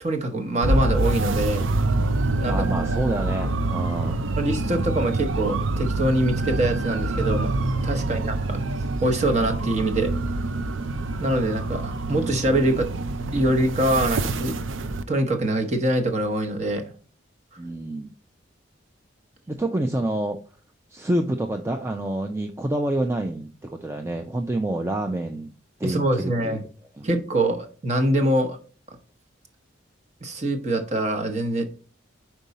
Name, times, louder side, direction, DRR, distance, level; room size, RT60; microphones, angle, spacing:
voice 1, 0.0-1.7 2.4-2.5 4.4-7.5 7.8-8.6 9.0-10.1 11.2-12.9 13.3-14.5 15.1-16.9 25.8-26.6 27.0-28.6 30.2-31.6, right 1 dB, 35° right, 5 dB, 0.9 m, -24 dB
sound 1, 0.6-15.0, right 2 dB, 85° right, 0.5 m, -26 dB
voice 2, 2.5-4.2 8.0-8.3 17.6-18.1 19.5-20.4 20.9-25.5 25.8-26.6 27.0-27.1, right 1 dB, 15° right, 4 dB, 0.4 m, -28 dB
5.2 x 4.6 x 4.0 m, 0.39 s
head